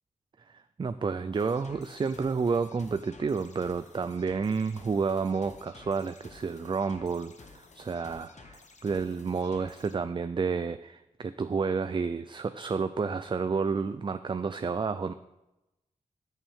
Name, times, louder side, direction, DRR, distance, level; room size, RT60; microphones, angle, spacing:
voice 1, 0.5-15.1, right 5 dB, 35° right, 11 dB, 0.4 m, -30 dB
sound 1, 1.3-9.9, left 4 dB, 60° left, 1.1 m, -53 dB
13.5 x 7.2 x 3.6 m, 0.95 s
cardioid pair, 55°, 14 cm